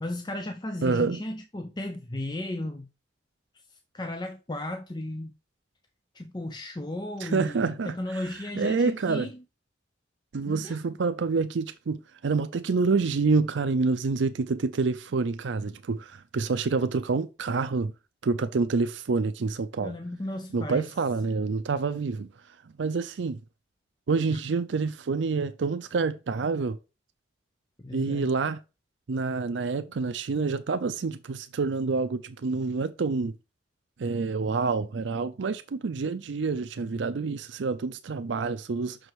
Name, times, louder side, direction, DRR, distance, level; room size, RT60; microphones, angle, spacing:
voice 1, 0.0-2.9 3.7-5.3 6.1-9.4 10.5-11.0 19.8-20.9 27.8-28.3, left 1 dB, 25° left, 0.6 m, -35 dB
voice 2, 0.8-1.2 7.2-7.9 8.6-9.3 10.3-12.0 12.2-17.9 18.2-19.9 20.5-22.3 22.8-23.4 24.1-26.8 27.9-28.6 29.1-33.3 34.0-39.0, right 4 dB, 75° right, 0.5 m, -27 dB
6.2 x 4.8 x 4.7 m
head